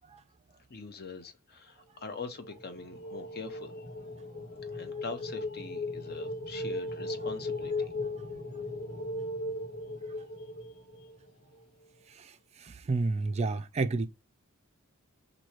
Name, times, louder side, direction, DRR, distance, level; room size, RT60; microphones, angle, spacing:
voice 1, 0.7-3.8 4.7-7.9 10.7-11.1, left 4 dB, 45° left, 0.7 m, -43 dB
sound 1, 2.4-11.3, left 2 dB, 85° left, 1.5 m, -37 dB
voice 2, 12.1-14.1, right 3 dB, 30° right, 0.3 m, -31 dB
3.0 x 2.7 x 4.2 m
head